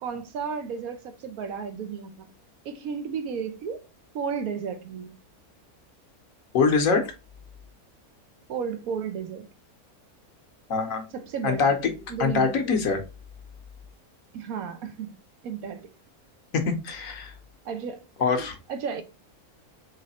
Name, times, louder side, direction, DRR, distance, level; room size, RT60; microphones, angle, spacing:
voice 1, 0.0-2.3 2.6-3.9 4.1-5.2 8.5-9.5 11.1-11.7 12.1-12.6 14.3-15.2 15.4-15.9 17.6-19.0, right 6 dB, 75° right, 1.1 m, -33 dB
voice 2, 6.5-7.1 10.7-11.1 11.4-11.9 12.2-13.0 16.5-17.3 18.2-18.5, left 5 dB, 65° left, 1.2 m, -23 dB
4.0 x 3.1 x 4.1 m
omnidirectional pair, 1.6 m